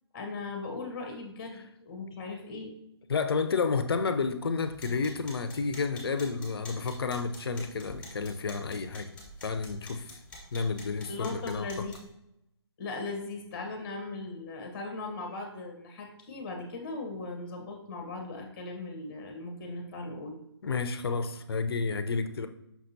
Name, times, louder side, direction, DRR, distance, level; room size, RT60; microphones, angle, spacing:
voice 1, 0.1-2.7 11.1-12.0 12.8-20.4, left 3 dB, 30° left, 3 dB, 1.1 m, -38 dB
voice 2, 3.1-9.1 9.4-10.1 10.5-11.9 20.6-22.5, left 4 dB, 60° left, 9 dB, 0.7 m, -30 dB
sound 1, 4.6-12.1, left 1 dB, 5° left, 1.5 m, -49 dB
6.0 x 5.7 x 2.7 m, 0.84 s
figure-of-eight pair, 150°, 14 cm